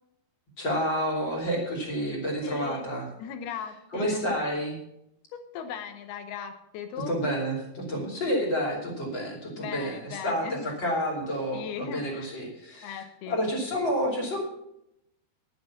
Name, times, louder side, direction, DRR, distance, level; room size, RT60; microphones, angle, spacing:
voice 1, 0.6-3.1 3.9-4.8 7.1-14.5, equal, 30° left, -2 dB, 3.0 m, -29 dB
voice 2, 2.4-2.9 3.2-4.2 5.3-7.2 9.6-10.7 11.5-12.3 12.8-13.4, left 8 dB, 75° left, 8 dB, 3.0 m, -38 dB
11.0 x 9.6 x 5.9 m, 0.81 s
omnidirectional pair, 4.7 m